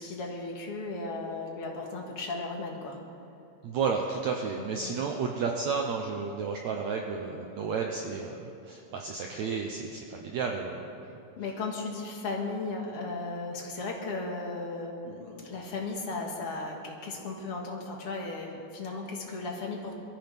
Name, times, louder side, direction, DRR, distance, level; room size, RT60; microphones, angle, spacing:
voice 1, 0.0-3.0 4.6-4.9 11.4-19.9, left 3 dB, 45° left, -1 dB, 2.2 m, -36 dB
voice 2, 3.6-10.9, right 5 dB, 85° right, 1 dB, 1.6 m, -32 dB
23.0 x 13.5 x 3.6 m, 2.6 s
omnidirectional pair, 4.3 m